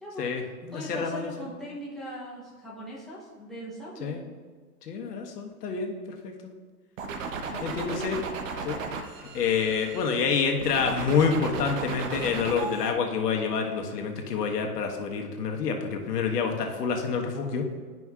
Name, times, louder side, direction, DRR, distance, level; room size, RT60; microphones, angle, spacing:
voice 1, 0.2-1.3 4.0-4.2 4.8-6.3 7.6-8.2 8.6-8.8 9.3-17.7, left 5 dB, 80° left, 3 dB, 1.3 m, -28 dB
voice 2, 0.7-4.2 7.5-7.8, equal, ahead, -8 dB, 0.7 m, -40 dB
sound 1, 7.0-10.2 10.6-12.9, right 4 dB, 55° right, 0.9 m, -35 dB
11.0 x 5.2 x 2.4 m, 1.5 s
hypercardioid pair, 155°, 47 cm